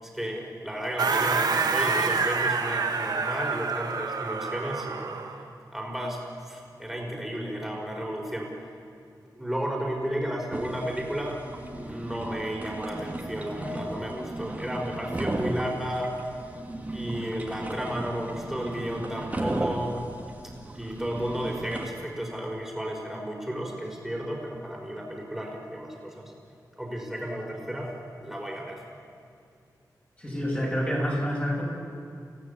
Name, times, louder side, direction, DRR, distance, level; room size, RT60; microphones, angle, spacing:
voice 1, 0.0-5.1 5.7-8.6 9.2-11.4 11.7-16.3 16.9-20.0 20.7-26.3 26.8-28.8, equal, 5° right, 0 dB, 5.1 m, -33 dB
sound 1, 1.0-5.4, right 4 dB, 75° right, 2.1 m, -27 dB
sound 2, 10.5-21.9, right 2 dB, 20° right, 2.3 m, -35 dB
voice 2, 30.2-31.6, equal, 20° left, -3 dB, 7.7 m, -28 dB
30.0 x 16.5 x 8.6 m, 2.4 s
wide cardioid pair, 135°, 7 cm